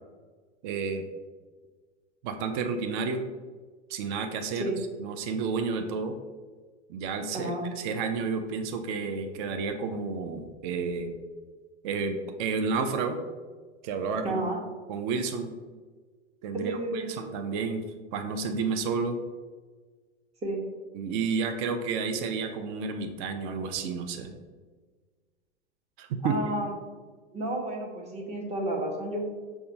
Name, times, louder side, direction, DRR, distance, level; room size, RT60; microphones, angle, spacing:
voice 1, 0.6-1.1 2.2-3.2 3.9-4.7 5.0-6.1 6.9-11.1 11.8-13.2 13.8-14.4 14.9-15.5 16.4-17.8 18.1-19.2 20.9-24.4 26.0-26.4, right 5 dB, 45° right, 6 dB, 0.5 m, -31 dB
voice 2, 7.3-7.7 14.2-14.6 16.5-17.1 20.4-20.6 26.2-26.7 27.3-29.2, right 1 dB, 20° right, -1 dB, 0.8 m, -31 dB
5.5 x 2.3 x 2.6 m, 1.4 s
hypercardioid pair, 95°, 35 cm